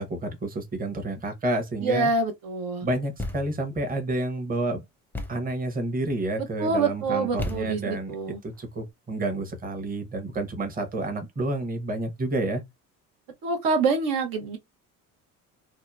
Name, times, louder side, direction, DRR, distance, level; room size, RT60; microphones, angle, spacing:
voice 1, 0.0-2.1 2.8-4.8 5.3-8.2 8.4-12.6, right 2 dB, 20° right, 0.9 m, -29 dB
voice 2, 1.8-2.9 6.6-8.4 13.4-14.6, right 3 dB, 65° right, 0.9 m, -26 dB
Thump thud, 3.2-3.7 5.1-5.6 7.4-8.1, left 2 dB, 5° left, 0.6 m, -34 dB
2.7 x 2.1 x 2.3 m
supercardioid pair, 75°, 39 cm